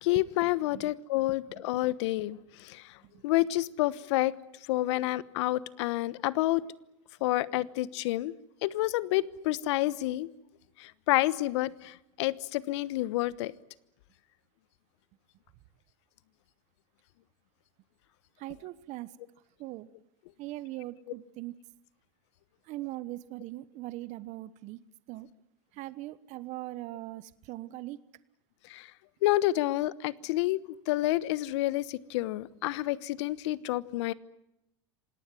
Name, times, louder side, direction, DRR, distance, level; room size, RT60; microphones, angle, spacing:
voice 1, 0.0-2.4 2.6-2.8 3.2-4.3 4.7-6.6 7.2-8.3 8.6-10.3 10.8-13.5 28.7-28.9 29.2-30.6 30.9-34.1, left 17 dB, 65° left, 18 dB, 1.1 m, -29 dB
voice 2, 18.4-19.1 19.6-19.9 20.4-21.5 22.7-24.8 25.1-25.3 25.7-28.0, right 17 dB, 50° right, 16 dB, 1.2 m, -40 dB
27.0 x 18.5 x 9.7 m, 0.85 s
hypercardioid pair, 100°, 16 cm